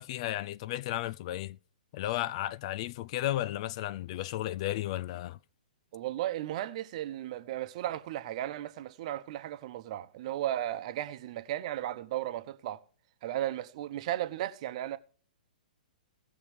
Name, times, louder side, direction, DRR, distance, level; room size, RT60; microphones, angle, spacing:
voice 1, 0.0-1.6 1.9-5.4, left 14 dB, 45° left, 0.5 m, -34 dB
voice 2, 5.9-12.8 13.2-15.0, right 13 dB, 45° right, 1.0 m, -35 dB
18.5 x 6.6 x 3.4 m
figure-of-eight pair, 115°, 5 cm